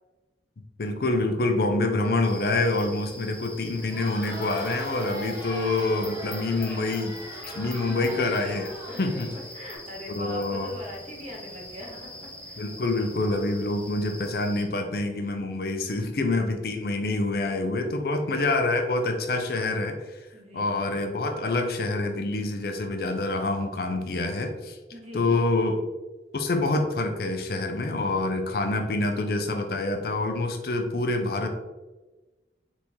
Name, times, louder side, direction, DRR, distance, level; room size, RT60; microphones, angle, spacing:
voice 1, 0.8-7.2 7.6-8.7 9.0-9.4 10.1-10.7 12.6-20.2 20.5-24.8 25.1-25.8 26.3-31.5, left 2 dB, 55° left, 5 dB, 0.5 m, -26 dB
sound 1, 2.2-14.6, left 1 dB, 5° left, 0.6 m, -43 dB
Crowd, 3.8-9.8, right 1 dB, 15° right, 1.4 m, -40 dB
voice 2, 7.6-8.0 8.9-9.0 9.3-12.7 17.6-17.9 18.3-18.4 20.3-20.8 24.9-25.5, left 1 dB, 35° right, -2 dB, 1.0 m, -42 dB
4.1 x 3.5 x 3.0 m, 1.2 s
head